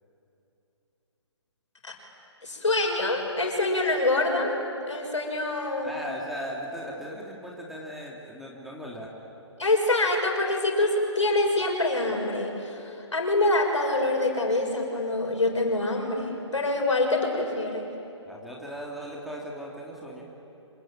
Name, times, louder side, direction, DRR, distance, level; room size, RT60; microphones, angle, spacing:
voice 1, 2.4-4.6 4.9-5.9 9.6-17.8, left 2 dB, 80° left, 1 dB, 6.2 m, -25 dB
voice 2, 5.8-9.1 18.3-20.3, equal, ahead, -3 dB, 3.1 m, -38 dB
26.5 x 24.5 x 9.1 m, 2.9 s
figure-of-eight pair, 135°, 15 cm